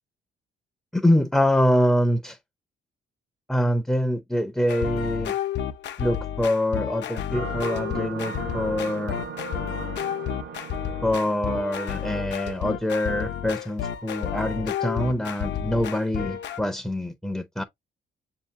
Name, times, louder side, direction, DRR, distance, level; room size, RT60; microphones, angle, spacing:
voice 1, 0.9-2.4 3.5-5.3 6.0-9.2 11.0-17.6, left 1 dB, 5° left, 0.4 m, -25 dB
sound 1, 4.7-16.6, left 9 dB, 65° left, 0.6 m, -31 dB
sound 2, 7.3-12.6, right 8 dB, 60° right, 0.6 m, -38 dB
6.9 x 2.7 x 2.4 m
cardioid pair, 90°, 20 cm